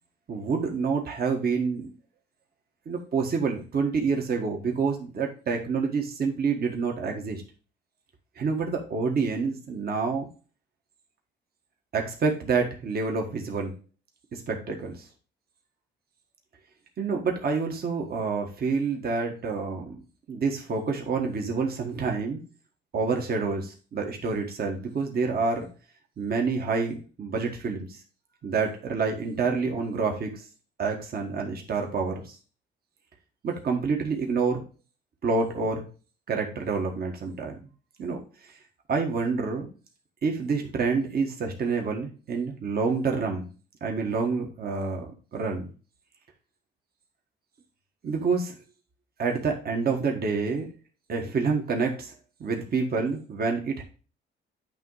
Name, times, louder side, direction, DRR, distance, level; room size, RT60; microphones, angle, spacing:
voice 1, 0.3-1.9 2.8-7.4 8.4-10.3 11.9-13.7 14.3-15.0 17.0-20.0 20.3-22.4 22.9-25.7 26.2-27.9 28.4-30.4 30.8-32.4 33.4-34.6 35.2-35.9 36.3-37.6 38.0-38.2 38.9-39.7 40.2-43.5 43.8-45.7 48.0-48.5 49.2-50.7 51.1-52.1 52.4-53.8, right 4 dB, 50° right, 2 dB, 1.4 m, -28 dB
8.9 x 3.0 x 4.7 m, 0.36 s
cardioid pair, 90°, 20 cm